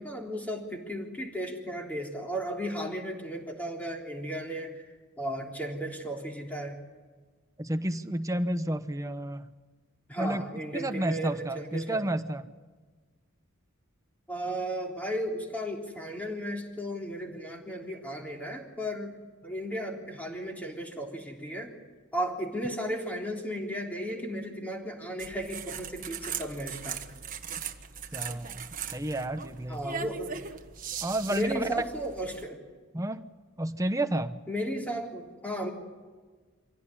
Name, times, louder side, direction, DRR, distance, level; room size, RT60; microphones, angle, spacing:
voice 1, 0.0-4.8 5.2-6.8 10.1-12.0 14.3-19.1 19.4-21.7 22.1-27.0 29.7-30.4 31.3-32.6 34.5-35.7, equal, 5° left, 0 dB, 3.5 m, -35 dB
voice 2, 7.6-9.4 10.2-10.4 10.7-12.4 28.1-29.8 31.0-31.7 32.9-33.2 33.6-34.4, right 1 dB, 15° right, 9 dB, 0.9 m, -31 dB
sound 1, 25.2-32.4, right 7 dB, 40° right, 1.3 m, -39 dB
25.5 x 17.0 x 9.9 m, 1.4 s
head